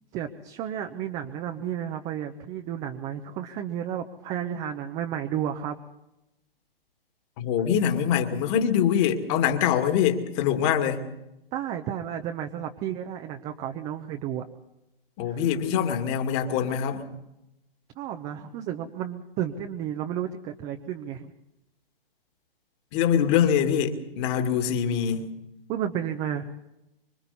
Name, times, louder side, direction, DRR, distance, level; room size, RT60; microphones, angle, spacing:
voice 1, 0.1-5.8 11.5-14.5 15.3-15.4 18.0-21.3 25.7-26.5, right 10 dB, 20° right, 5 dB, 1.0 m, -32 dB
voice 2, 7.4-11.0 15.2-17.1 22.9-25.3, left 8 dB, 30° left, 5 dB, 2.3 m, -24 dB
25.5 x 24.5 x 4.2 m, 0.91 s
figure-of-eight pair, 130°, 29 cm